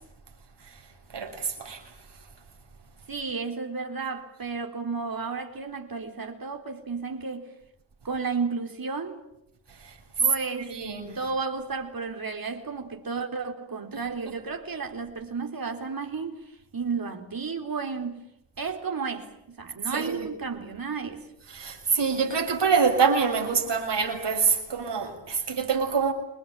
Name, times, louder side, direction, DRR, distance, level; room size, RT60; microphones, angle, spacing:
voice 1, 1.1-1.8 10.6-11.2 13.9-14.0 19.9-20.2 21.5-26.1, right 5 dB, 65° right, 6.5 m, -25 dB
voice 2, 3.1-7.5 8.0-9.2 10.2-10.8 11.2-18.2 18.6-21.3, right 4 dB, 50° right, 4.1 m, -33 dB
28.0 x 21.0 x 9.0 m
cardioid pair, 50°, 45 cm